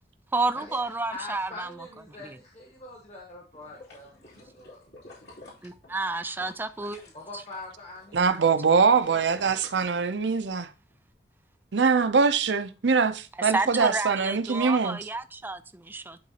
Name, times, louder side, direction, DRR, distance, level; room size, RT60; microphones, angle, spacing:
voice 1, 0.3-1.8 2.2-2.4 5.6-7.0 8.7-8.8 13.4-16.2, right 3 dB, 10° right, 0.4 m, -30 dB
voice 2, 1.1-4.9 7.1-9.6, left 2 dB, 40° left, 1.5 m, -44 dB
Water Bubbling, 3.5-7.6 8.0-10.5 10.9-11.0, left 2 dB, 70° left, 3.2 m, -50 dB
voice 3, 8.1-10.7 11.7-15.0, right 5 dB, 80° right, 0.6 m, -23 dB
11.5 x 3.9 x 2.8 m
head